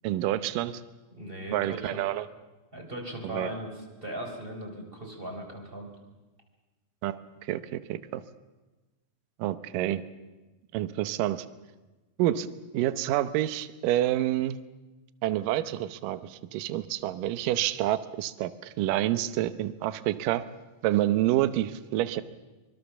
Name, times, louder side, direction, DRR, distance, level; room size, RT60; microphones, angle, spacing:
voice 1, 0.0-0.8 1.5-2.3 3.2-3.5 7.0-8.2 9.4-10.0 10.7-11.5 12.2-12.5 12.7-14.6 15.2-20.4 20.8-22.2, right 14 dB, 70° right, 14 dB, 2.3 m, -28 dB
voice 2, 1.1-2.0 2.7-5.9, right 1 dB, 15° right, 2 dB, 4.1 m, -38 dB
24.0 x 23.5 x 7.1 m, 1.1 s
omnidirectional pair, 4.3 m